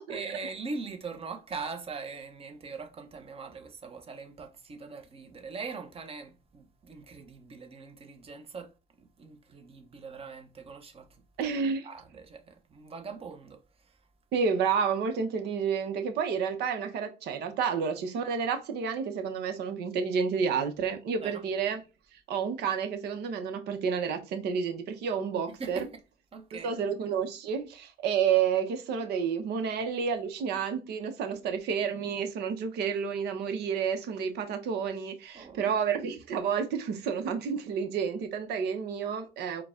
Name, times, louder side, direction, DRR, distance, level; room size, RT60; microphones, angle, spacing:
voice 1, 0.1-8.7 9.0-11.1 11.4-11.5 11.8-13.6 13.8-13.9 21.2-21.4 25.5-26.0 26.3-26.8 31.4-31.5 35.3-35.7, right 4 dB, 35° right, 0.9 m, -41 dB
voice 2, 11.4-11.9 14.3-21.8 22.3-25.9 26.5-39.6, right 6 dB, 75° right, 0.9 m, -30 dB
4.6 x 2.3 x 3.7 m
cardioid pair, 110°, 17 cm